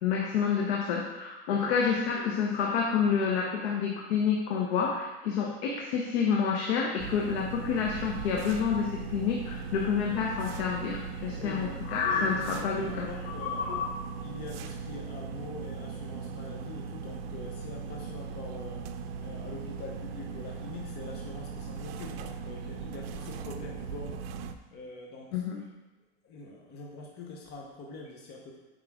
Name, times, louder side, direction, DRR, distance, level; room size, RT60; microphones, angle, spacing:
voice 1, 0.0-13.9 25.3-25.6, left 6 dB, 80° left, 0 dB, 1.0 m, -29 dB
sound 1, 7.0-24.6, right 5 dB, 65° right, 0.6 m, -39 dB
voice 2, 11.3-11.8 12.1-13.7 14.2-24.2 24.7-25.7 26.2-28.6, left 2 dB, 30° left, -1 dB, 1.0 m, -44 dB
8.7 x 4.8 x 3.6 m, 1.1 s
supercardioid pair, 150°, 31 cm